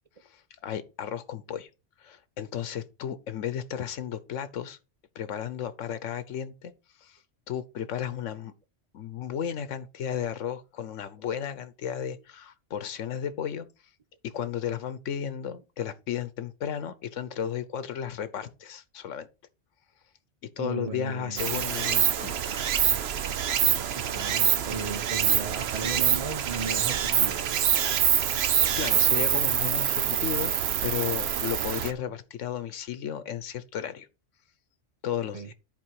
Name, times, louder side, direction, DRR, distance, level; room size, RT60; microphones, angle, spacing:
voice 1, 0.2-1.7 2.0-4.8 5.1-6.7 7.0-7.2 7.5-8.5 8.9-13.7 14.2-19.3 20.6-22.5 28.5-30.5 30.8-34.1 35.0-35.5, left 9 dB, 90° left, 1.1 m, -34 dB
voice 2, 20.6-21.4 23.9-27.4 35.3-35.5, right 4 dB, 35° right, 0.7 m, -35 dB
Stream, 21.4-31.9, right 9 dB, 65° right, 0.9 m, -25 dB
11.0 x 4.5 x 4.6 m
omnidirectional pair, 1.3 m